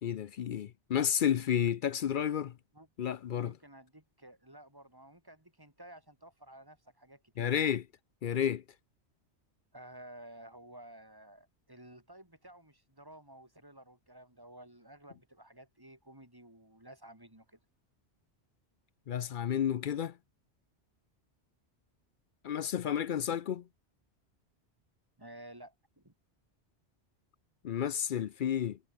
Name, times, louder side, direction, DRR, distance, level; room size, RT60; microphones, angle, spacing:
voice 1, 0.0-2.6 3.0-3.5 7.4-7.8 8.2-8.6 19.1-20.2 22.4-23.7 27.6-28.8, left 9 dB, 55° left, 0.6 m, -31 dB
voice 2, 3.3-7.6 9.7-17.6 25.2-26.1, right 1 dB, 20° right, 4.9 m, -53 dB
omnidirectional pair, 1.1 m